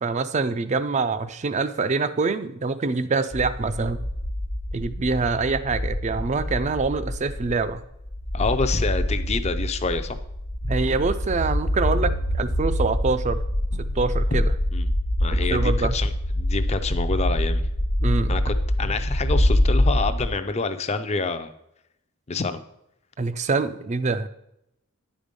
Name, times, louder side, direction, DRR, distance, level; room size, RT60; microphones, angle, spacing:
voice 1, 0.0-4.0 4.7-7.8 10.6-13.4 14.0-14.5 15.3-16.0 18.0-18.3 23.2-24.3, right 4 dB, 30° right, 13 dB, 0.4 m, -25 dB
sound 1, 3.3-20.3, left 1 dB, 85° left, 1.1 m, -25 dB
voice 2, 8.3-10.2 14.7-14.9 15.2-16.1 16.4-17.6 18.3-21.5 22.3-22.6, left 4 dB, 30° left, 10 dB, 0.5 m, -27 dB
sound 2, 11.9-12.5 13.7-14.4 15.4-16.0 17.2-17.7 18.8-19.1, equal, 85° right, 0.6 m, -43 dB
9.7 x 5.1 x 5.2 m, 0.82 s
head